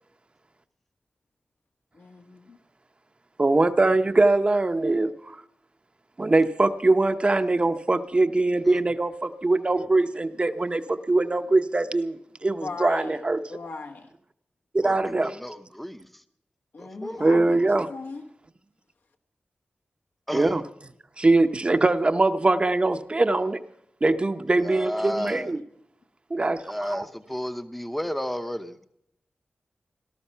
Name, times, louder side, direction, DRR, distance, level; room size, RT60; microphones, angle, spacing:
voice 1, 1.9-2.6 12.4-13.2 13.5-14.1 16.7-18.2 25.1-25.4, left 3 dB, 80° left, 4 dB, 1.6 m, -38 dB
voice 2, 3.4-5.4 6.2-13.4 14.7-15.3 17.2-17.9 20.3-20.6 21.2-23.6 24.0-25.6 26.3-27.0, right 2 dB, 30° right, 8 dB, 0.8 m, -22 dB
voice 3, 14.8-16.2 16.8-17.2 20.3-20.6 24.6-25.5 26.6-28.8, equal, 5° left, 10 dB, 0.8 m, -33 dB
18.0 x 13.0 x 5.6 m, 0.74 s
wide cardioid pair, 100°, 3 cm